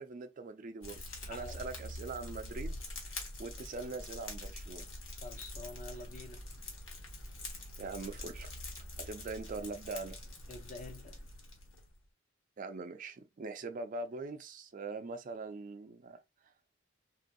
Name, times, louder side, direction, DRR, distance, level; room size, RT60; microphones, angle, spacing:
voice 1, 0.0-1.0 1.3-4.9 7.8-8.6 9.0-10.2 12.6-16.2, right 3 dB, 40° right, 0.4 m, -42 dB
Fire, 0.8-12.0, left 1 dB, 65° left, 1.3 m, -45 dB
voice 2, 1.1-1.6 5.2-6.4 10.5-11.2, left 3 dB, 40° left, 0.7 m, -47 dB
3.3 x 2.6 x 2.3 m
head